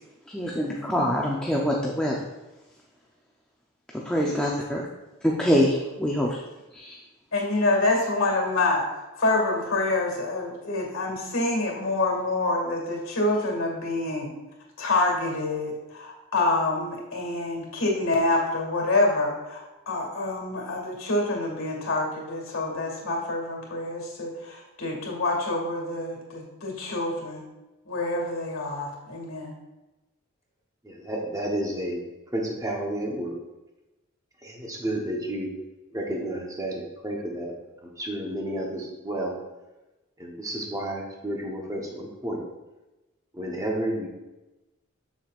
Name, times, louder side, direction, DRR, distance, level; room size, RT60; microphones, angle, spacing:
voice 1, 0.3-2.2 3.9-4.9 5.2-6.4 6.7-7.0, equal, 5° left, -3 dB, 0.5 m, -25 dB
voice 2, 7.3-14.3 14.8-27.4 27.9-29.6, left 2 dB, 70° left, 0 dB, 2.1 m, -27 dB
voice 3, 30.8-32.0 32.3-33.4 34.4-35.5 35.9-37.5 37.8-39.4 40.2-42.5 43.3-44.1, right 1 dB, 15° right, -1 dB, 0.9 m, -31 dB
7.3 x 7.0 x 2.5 m, 1.1 s
head